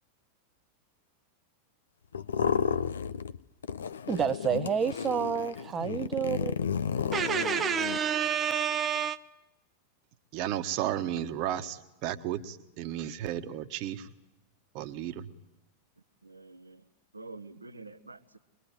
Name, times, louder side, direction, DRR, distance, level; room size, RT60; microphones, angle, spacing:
sound 1, 2.1-3.4 3.6-8.0, left 7 dB, 70° left, 0.9 m, -32 dB
voice 1, 4.1-6.6 7.1-9.2, right 7 dB, 20° right, 12 dB, 0.9 m, -29 dB
voice 2, 10.3-14.1 14.7-15.1, right 11 dB, 45° right, 9 dB, 1.5 m, -33 dB
voice 3, 16.2-16.8 17.1-18.4, right 3 dB, 80° right, 11 dB, 1.3 m, -47 dB
24.0 x 21.5 x 9.1 m, 0.91 s
figure-of-eight pair, 90°, 0 cm